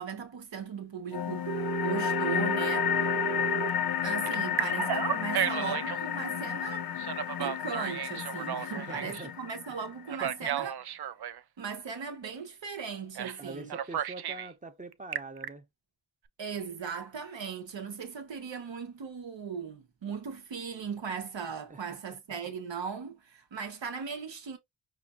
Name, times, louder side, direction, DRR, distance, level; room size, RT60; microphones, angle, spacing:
voice 1, 0.0-2.9 4.0-6.9 7.4-10.8 11.6-13.7 16.4-24.6, right 6 dB, 75° right, 1.0 m, -38 dB
sound 1, 1.1-10.1, left 8 dB, 50° left, 0.5 m, -32 dB
Telephone, 1.5-3.7 4.3-6.0 7.0-9.2 10.1-11.4 13.2-13.4 13.7-14.5 14.9-15.5, right 10 dB, 60° right, 0.5 m, -33 dB
voice 2, 8.8-9.3 10.2-10.7 13.2-15.6 21.7-22.0, right 2 dB, 15° right, 0.7 m, -44 dB
5.0 x 2.4 x 2.4 m
cardioid pair, 45°, 45 cm